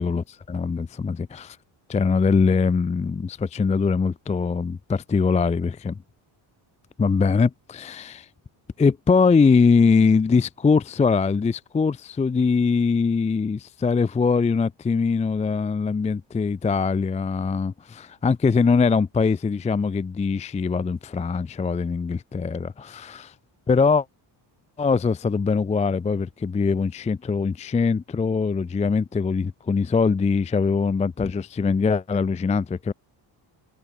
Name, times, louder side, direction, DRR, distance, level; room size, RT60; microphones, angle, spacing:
voice 1, 0.0-1.6 1.9-6.0 7.0-8.3 8.8-23.3 23.7-24.1 24.8-32.9, left 5 dB, 15° left, 0.4 m, -22 dB
cardioid pair, 155°, 48 cm